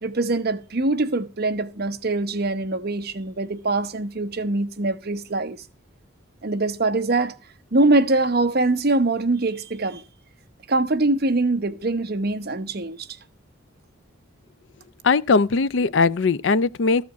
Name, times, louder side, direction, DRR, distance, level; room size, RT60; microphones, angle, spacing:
voice 1, 0.0-5.6 6.4-7.3 7.7-10.0 10.7-13.1, right 2 dB, 50° right, 1.0 m, -23 dB
voice 2, 15.0-17.0, left 4 dB, 65° left, 0.5 m, -20 dB
14.0 x 4.9 x 8.0 m
head